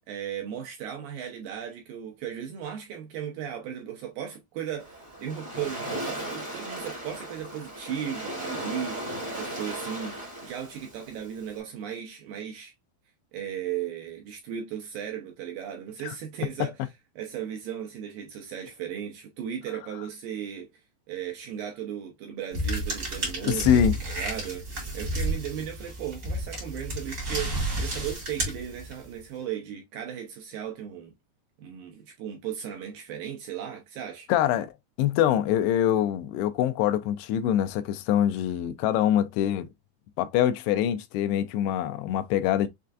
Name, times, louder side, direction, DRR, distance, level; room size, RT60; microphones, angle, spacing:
voice 1, 0.1-12.7 13.3-20.7 21.1-24.7 24.9-31.1 31.6-34.3, right 9 dB, 80° right, 2.1 m, -36 dB
Waves surf, 4.8-11.6, right 1 dB, 20° right, 0.8 m, -37 dB
sound 1, 22.5-29.2, right 1 dB, 40° right, 1.1 m, -31 dB
voice 2, 23.5-23.9 34.3-34.7 35.0-39.7 40.2-42.7, left 10 dB, 85° left, 2.6 m, -24 dB
6.6 x 2.5 x 2.4 m
omnidirectional pair, 4.6 m